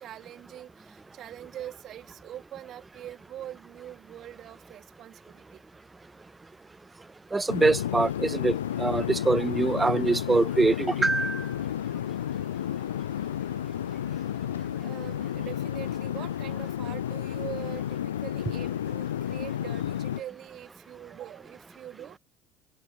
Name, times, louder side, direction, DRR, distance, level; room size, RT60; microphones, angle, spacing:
voice 1, 0.0-5.6 9.4-9.5 14.8-22.2, right 12 dB, 50° right, 3.6 m, -43 dB
voice 2, 7.3-8.5 8.8-11.4, right 3 dB, 20° right, 0.4 m, -24 dB
sound 1, 7.5-20.2, left 10 dB, 80° left, 0.5 m, -31 dB
figure-of-eight pair, 55°, 0 cm